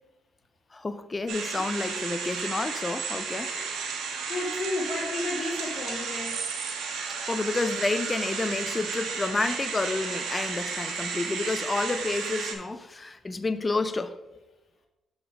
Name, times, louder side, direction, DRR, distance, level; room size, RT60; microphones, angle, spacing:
voice 1, 0.7-3.5 7.3-14.1, left 3 dB, 25° left, 0.5 m, -29 dB
sound 1, 1.3-12.5, right 5 dB, 90° right, 1.2 m, -33 dB
voice 2, 3.3-3.9 4.3-6.5, left 2 dB, 50° left, 1.5 m, -33 dB
6.5 x 5.1 x 4.8 m
cardioid pair, 105°, 0 cm